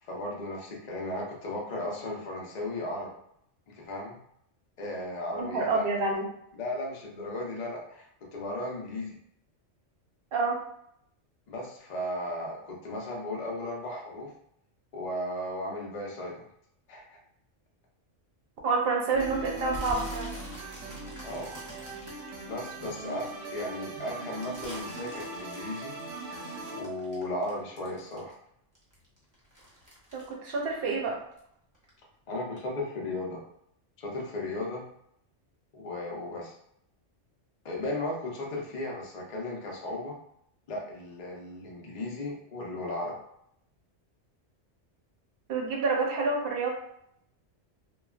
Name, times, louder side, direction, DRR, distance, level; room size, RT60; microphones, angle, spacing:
voice 1, 0.0-3.1 3.7-4.2 4.8-5.9 6.5-9.1 11.5-14.3 14.9-16.4 16.9-17.0 20.7-21.5 22.5-25.9 26.7-28.4 32.3-33.4 34.0-34.8 35.7-36.5 37.6-40.2 40.7-43.2, left 1 dB, 45° left, -2 dB, 0.6 m, -35 dB
voice 2, 5.4-6.3 10.3-10.6 18.6-20.3 30.1-31.2 45.5-46.7, right 3 dB, 60° right, 0 dB, 0.8 m, -28 dB
sound 1, 19.1-26.8, right 2 dB, 85° right, 0.9 m, -40 dB
sound 2, 19.7-23.3 23.7-28.5 28.7-31.5 31.7-32.1 32.6-32.7, equal, 20° right, 0.7 m, -47 dB
3.0 x 2.2 x 2.3 m, 0.72 s
omnidirectional pair, 1.2 m